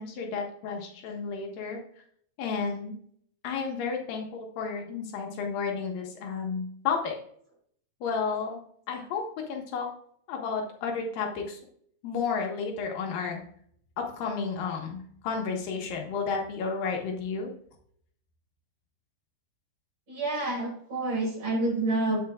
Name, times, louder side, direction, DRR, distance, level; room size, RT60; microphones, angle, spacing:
voice 1, 0.0-1.8 2.4-3.0 3.4-7.2 8.0-8.6 8.9-9.2 9.5-9.9 10.3-11.6 12.0-13.4 14.0-17.5, left 5 dB, 80° left, 1 dB, 3.1 m, -32 dB
voice 2, 20.1-22.2, right 2 dB, 40° right, -4 dB, 5.0 m, -28 dB
15.5 x 5.5 x 2.4 m, 0.64 s
omnidirectional pair, 4.0 m